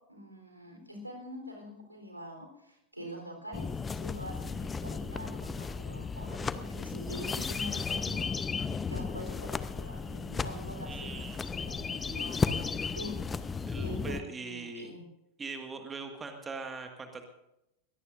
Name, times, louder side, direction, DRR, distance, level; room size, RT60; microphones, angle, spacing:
voice 1, 0.1-3.7 3.9-8.6 8.9-13.2 13.7-15.1, equal, 85° right, 3 dB, 3.8 m, -44 dB
sound 1, 3.5-14.2, left 5 dB, 15° left, 0.7 m, -34 dB
voice 2, 10.9-11.4 13.7-14.9 15.4-17.3, right 4 dB, 15° right, 5 dB, 1.8 m, -41 dB
22.5 x 17.5 x 2.6 m, 0.85 s
figure-of-eight pair, 90°, 0 cm